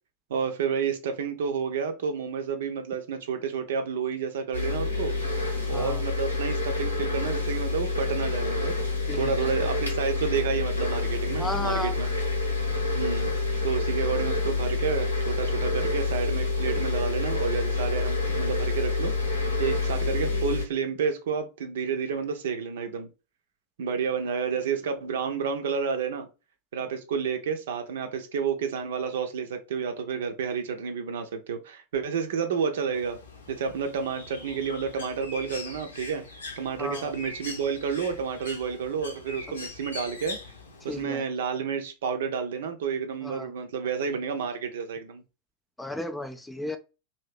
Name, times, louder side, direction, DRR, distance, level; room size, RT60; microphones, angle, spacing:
voice 1, 0.3-5.2 5.7-8.8 9.1-12.2 12.9-13.3 13.6-23.1 23.8-26.3 26.7-33.2 33.5-36.2 36.6-40.4 40.8-45.2, right 6 dB, 60° right, 0.6 m, -30 dB
sound 1, 4.5-20.6, left 3 dB, 90° left, 1.1 m, -27 dB
voice 2, 9.1-9.5 11.4-11.9 36.8-37.1 40.9-41.2 43.2-43.5 45.8-46.8, left 1 dB, 5° left, 0.3 m, -33 dB
Bird, 32.9-41.0, left 3 dB, 70° left, 0.8 m, -42 dB
2.8 x 2.7 x 3.3 m
figure-of-eight pair, 90°, 0 cm